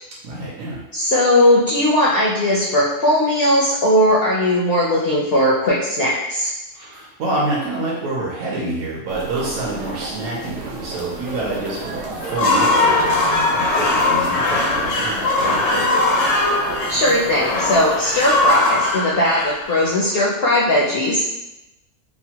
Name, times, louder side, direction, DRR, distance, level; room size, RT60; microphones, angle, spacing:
voice 1, 0.2-0.8 6.7-15.9, right 2 dB, 70° right, -5 dB, 1.0 m, -27 dB
voice 2, 0.9-6.5 16.9-21.2, left 1 dB, 65° left, -5 dB, 0.5 m, -18 dB
sound 1, 9.1-18.6, right 3 dB, 85° right, 1.1 m, -32 dB
sound 2, 12.2-20.3, left 2 dB, 90° left, 1.1 m, -20 dB
3.0 x 2.1 x 2.8 m, 0.94 s
omnidirectional pair, 1.6 m